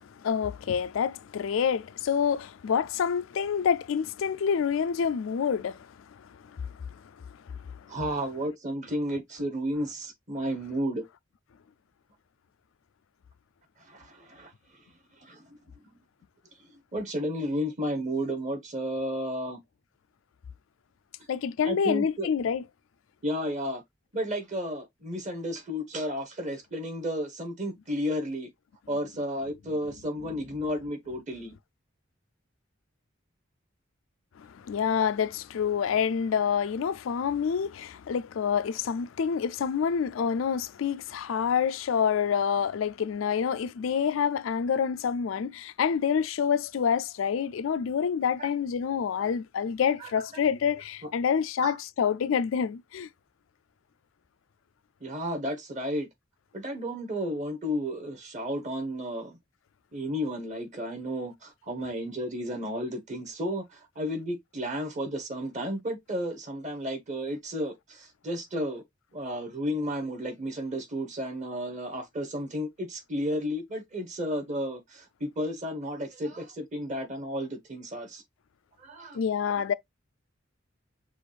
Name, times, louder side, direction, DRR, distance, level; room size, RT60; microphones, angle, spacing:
voice 1, 0.0-5.9 21.3-22.6 34.4-53.1 79.1-79.7, left 7 dB, 85° left, 0.4 m, -27 dB
voice 2, 7.9-11.0 13.8-14.5 15.2-15.4 16.9-19.6 21.6-22.3 23.2-23.8 24.1-28.5 28.9-31.5 48.4-48.5 50.0-50.4 51.6-51.8 55.0-56.1 56.5-59.4 59.9-68.8 69.1-78.2 78.8-79.2, equal, 40° right, 1.3 m, -32 dB
6.2 x 2.5 x 3.3 m
head